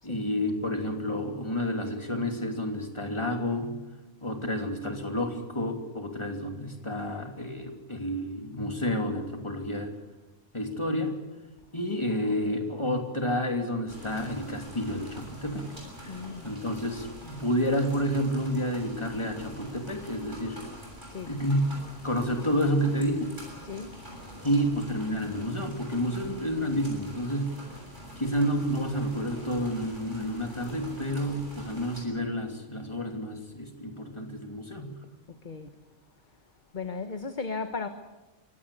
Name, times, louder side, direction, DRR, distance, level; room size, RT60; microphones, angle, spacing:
voice 1, 0.0-3.8 4.2-9.9 10.5-11.1 11.7-15.7 16.0-16.2 16.4-20.6 21.3-21.7 22.0-23.4 24.4-27.5 28.2-34.9, equal, 25° left, 4 dB, 3.0 m, -30 dB
sound 1, 13.9-32.0, equal, 40° right, 7.5 m, -45 dB
voice 2, 16.1-16.6 21.1-21.3 23.6-23.9 35.3-35.7 36.7-37.9, left 4 dB, 40° left, 8 dB, 1.3 m, -36 dB
24.0 x 17.5 x 8.5 m, 1.1 s
omnidirectional pair, 1.3 m